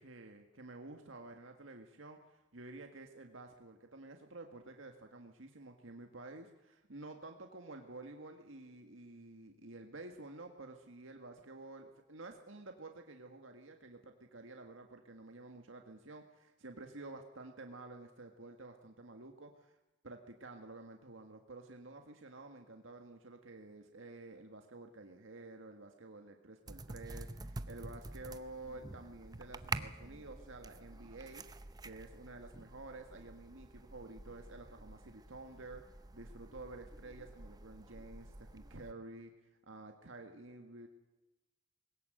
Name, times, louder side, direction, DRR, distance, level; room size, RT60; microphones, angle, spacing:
voice 1, 0.0-19.8 20.0-31.4 31.8-35.8 36.1-39.3 39.7-40.9, right 2 dB, 90° right, 4 dB, 1.8 m, -51 dB
sound 1, 26.7-38.9, right 3 dB, 20° right, 0.7 m, -48 dB
21.0 x 18.0 x 8.0 m, 1.0 s
head